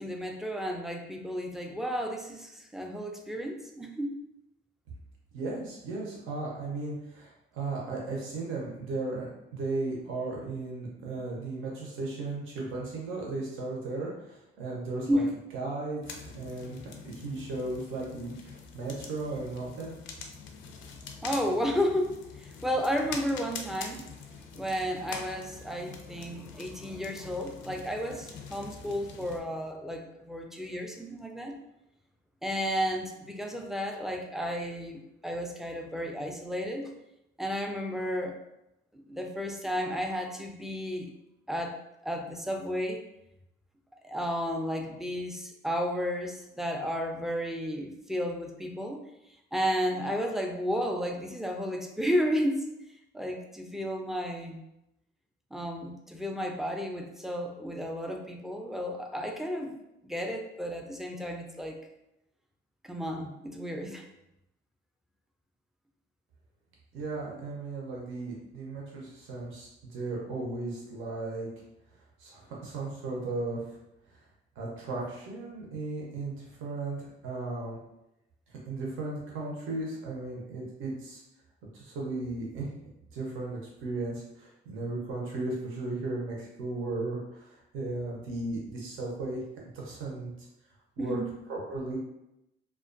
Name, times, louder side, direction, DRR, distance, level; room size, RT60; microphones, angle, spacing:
voice 1, 0.0-4.2 15.1-15.3 20.8-20.9 21.2-24.2 24.5-31.5 32.4-36.9 37.4-38.4 38.9-41.1 41.5-43.0 44.0-49.0 49.5-52.8 53.1-54.6 55.5-59.8 60.0-61.8 62.8-64.1 91.0-91.3, equal, ahead, 2 dB, 0.3 m, -32 dB
voice 2, 5.3-15.2 15.5-19.9 66.9-71.5 72.2-73.8 74.6-77.8 78.5-81.2 81.7-82.7 83.1-89.4 89.7-90.3 91.0-91.2 91.5-92.0, right 2 dB, 85° right, -3 dB, 0.7 m, -36 dB
sound 1, 16.0-29.4, left 5 dB, 75° left, 0.4 m, -45 dB
2.3 x 2.3 x 2.5 m, 0.87 s
cardioid pair, 90°, 20 cm